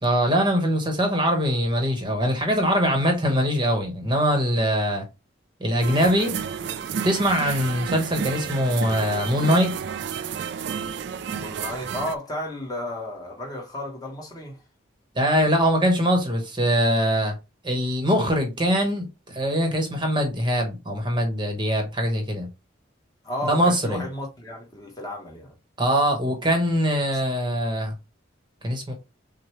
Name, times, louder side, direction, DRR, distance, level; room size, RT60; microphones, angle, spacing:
voice 1, 0.0-5.0 5.6-6.4 7.0-9.8 15.1-17.3 17.6-22.5 23.4-24.0 25.8-27.9 28.6-28.9, equal, 25° right, 1.0 m, -22 dB
sound 1, 5.8-12.2, right 7 dB, 60° right, 0.3 m, -31 dB
voice 2, 11.2-14.6 23.2-25.6, left 1 dB, 20° left, 1.1 m, -33 dB
6.4 x 2.2 x 3.1 m
head